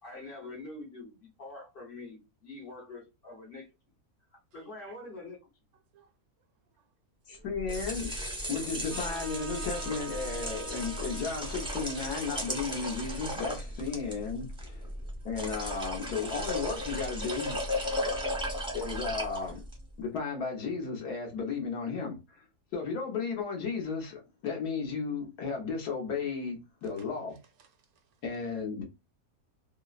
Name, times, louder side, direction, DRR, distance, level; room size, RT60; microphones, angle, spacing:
voice 1, 0.0-3.7 4.3-5.4, left 2 dB, 45° left, 0.8 m, -45 dB
voice 2, 7.3-8.1 8.5-14.9 15.2-17.6 18.7-19.6 20.0-22.4 22.7-27.3 28.2-28.8, left 5 dB, 75° left, 1.4 m, -34 dB
sound 1, 7.5-19.8, equal, 5° right, 0.5 m, -36 dB
Trumpet, 8.9-13.9, right 4 dB, 55° right, 0.6 m, -47 dB
voice 3, 27.6-28.2, right 7 dB, 70° right, 1.0 m, -63 dB
3.2 x 2.0 x 2.3 m
omnidirectional pair, 1.7 m